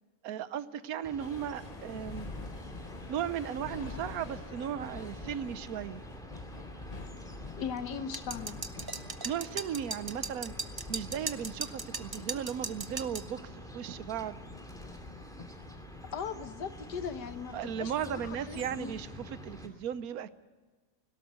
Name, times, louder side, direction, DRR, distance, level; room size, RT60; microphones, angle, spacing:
voice 1, 0.2-2.3 3.1-6.0 9.2-10.5 10.9-14.4 17.5-20.3, right 9 dB, 65° right, 14 dB, 1.2 m, -36 dB
sound 1, 1.0-19.7, equal, ahead, 2.3 m, -48 dB
sound 2, 1.2-19.1, left 4 dB, 35° left, 0.7 m, -48 dB
voice 2, 7.6-8.6 16.1-18.9, left 7 dB, 85° left, 10 dB, 1.7 m, -39 dB
sound 3, 8.1-13.3, right 3 dB, 30° right, 0.4 m, -38 dB
18.5 x 17.5 x 8.1 m, 1.4 s
omnidirectional pair, 1.7 m